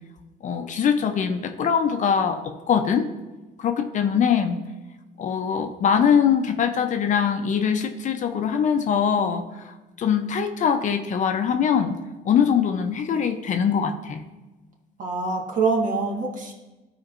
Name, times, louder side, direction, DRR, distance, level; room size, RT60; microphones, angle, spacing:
voice 1, 0.4-3.1 3.6-4.6 5.2-12.0 12.2-14.2, left 7 dB, 45° left, 7 dB, 0.6 m, -22 dB
voice 2, 15.0-16.5, right 4 dB, 50° right, 1 dB, 1.5 m, -25 dB
13.0 x 4.4 x 2.5 m, 1.1 s
cardioid pair, 110°, 17 cm